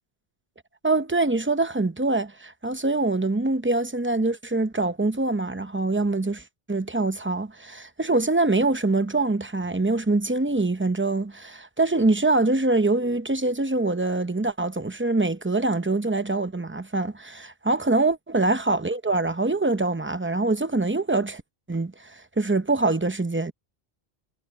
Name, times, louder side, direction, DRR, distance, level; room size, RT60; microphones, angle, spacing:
voice 1, 0.8-21.4 21.7-23.5, right 2 dB, 15° right, 0.6 m, -24 dB
omnidirectional pair, 1.1 m